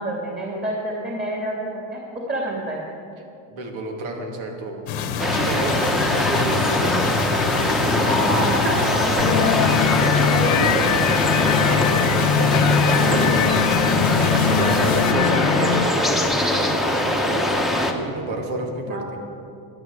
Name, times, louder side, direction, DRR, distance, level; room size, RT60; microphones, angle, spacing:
voice 1, 0.0-2.0 2.3-2.8 7.9-9.7 10.0-11.0 18.9-19.2, equal, 20° right, -2 dB, 2.6 m, -27 dB
voice 2, 3.5-4.9 5.2-8.4 11.3-19.2, right 2 dB, 75° right, 2 dB, 2.6 m, -30 dB
sound 1, 4.9-15.1, left 5 dB, 90° left, 1.4 m, -26 dB
sound 2, 5.2-17.9, left 1 dB, ahead, 1.1 m, -22 dB
sound 3, 9.2-15.9, left 9 dB, 40° left, 0.6 m, -22 dB
10.5 x 10.5 x 8.1 m, 2.6 s
cardioid pair, 120°, 47 cm